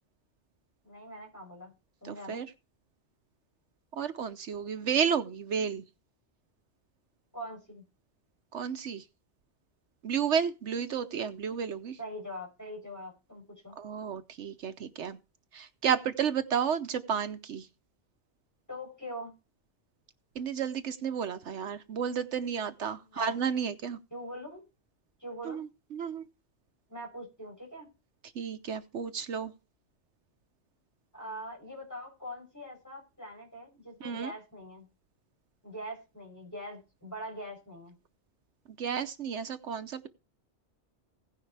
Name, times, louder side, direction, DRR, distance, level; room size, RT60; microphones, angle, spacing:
voice 1, 0.8-1.7 2.0-2.4 7.3-7.8 12.0-13.7 18.7-19.3 23.1-23.3 24.1-24.6 25.2-25.6 26.9-27.9 31.1-34.9 35.6-37.9, equal, 15° left, 8.1 m, -43 dB
voice 2, 2.0-2.5 3.9-5.8 8.5-9.0 10.0-12.0 13.8-15.2 15.5-17.7 20.4-24.0 25.4-26.3 28.3-29.5 34.0-34.3 38.8-40.1, right 7 dB, 75° right, 1.1 m, -32 dB
16.5 x 10.5 x 3.3 m
omnidirectional pair, 1.2 m